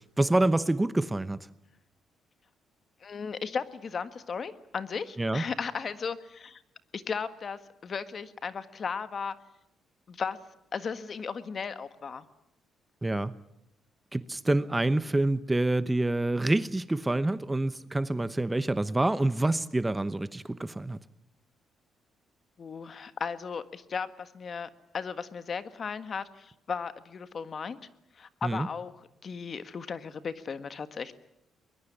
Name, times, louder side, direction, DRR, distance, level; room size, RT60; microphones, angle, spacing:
voice 1, 0.2-1.4 5.2-5.4 13.0-13.3 14.1-21.0 28.4-28.7, right 2 dB, 15° right, 15 dB, 0.9 m, -27 dB
voice 2, 3.0-6.6 6.9-9.3 10.1-10.4 10.7-12.3 22.6-27.8 28.1-31.1, left 6 dB, 45° left, 12 dB, 1.6 m, -36 dB
23.0 x 21.0 x 9.7 m, 0.84 s
cardioid pair, 90°, 0 cm